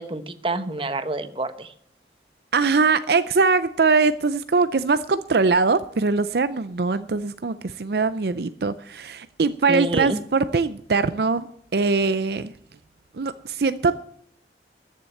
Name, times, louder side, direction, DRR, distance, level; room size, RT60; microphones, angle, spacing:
voice 1, 0.0-1.7 9.7-10.2, right 2 dB, 30° right, 10 dB, 1.0 m, -28 dB
voice 2, 2.5-11.5 11.7-12.5 13.2-14.0, right 4 dB, 60° right, 13 dB, 0.5 m, -22 dB
13.5 x 7.4 x 8.9 m, 0.67 s
head